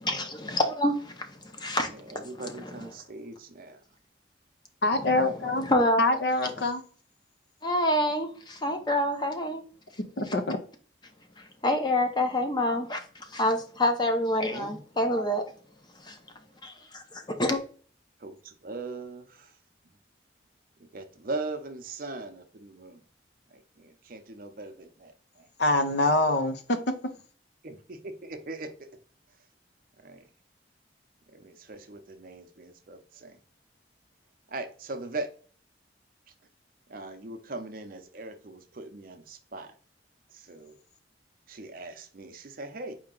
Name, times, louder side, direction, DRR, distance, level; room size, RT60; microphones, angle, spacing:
voice 1, 0.0-2.1 5.0-5.3 5.6-6.0 6.4-6.5 7.6-9.6 11.4-15.4 16.0-16.2 16.6-17.6, left 1 dB, 25° left, 0.7 m, -27 dB
voice 2, 1.8-3.8 14.4-14.8 18.2-19.6 20.8-23.0 23.5-25.5 27.6-28.9 30.0-30.3 31.3-33.4 34.5-35.3 36.9-39.7 40.3-40.8 41.5-42.9, right 2 dB, 50° right, 0.6 m, -40 dB
voice 3, 4.8-5.7 6.0-6.8 10.2-10.6 25.6-26.9, left 2 dB, 65° left, 0.7 m, -25 dB
4.5 x 2.8 x 3.7 m
head